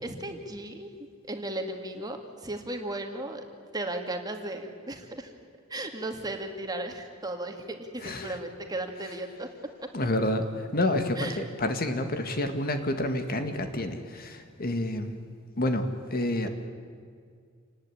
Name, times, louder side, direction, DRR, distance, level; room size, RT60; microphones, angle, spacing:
voice 1, 0.0-0.9 1.2-3.4 3.7-5.3 5.7-9.5 9.8-9.9 11.2-11.4, right 1 dB, 20° right, 4 dB, 2.3 m, -35 dB
voice 2, 8.0-8.4 9.9-15.1 15.6-16.5, left 1 dB, 45° left, 7 dB, 1.9 m, -29 dB
28.0 x 19.0 x 9.9 m, 2.1 s
head